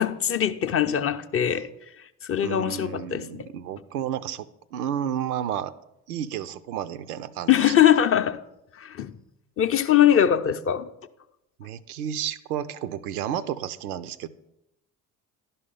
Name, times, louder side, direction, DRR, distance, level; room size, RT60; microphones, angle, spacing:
voice 1, 0.0-1.7 2.3-3.5 7.5-8.4 8.8-9.1 9.6-10.9, left 10 dB, 30° left, 0.5 m, -21 dB
voice 2, 2.4-5.7 6.1-7.7 11.6-14.3, right 10 dB, 75° right, 0.6 m, -31 dB
11.0 x 5.6 x 5.5 m
figure-of-eight pair, 50°, 46 cm